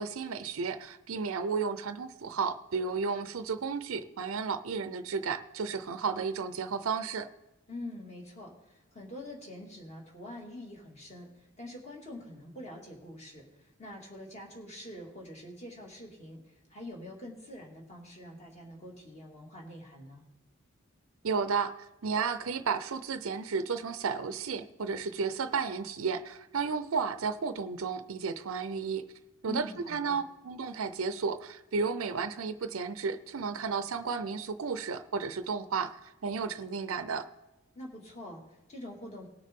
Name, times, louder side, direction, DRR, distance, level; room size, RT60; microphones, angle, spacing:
voice 1, 0.0-7.3 21.2-21.7 22.0-29.0 29.4-37.3, right 5 dB, 80° right, 11 dB, 0.6 m, -33 dB
voice 2, 7.7-20.2 29.5-30.2 37.7-39.3, left 1 dB, 30° left, -1 dB, 2.4 m, -45 dB
19.0 x 6.5 x 3.7 m, 1.0 s
head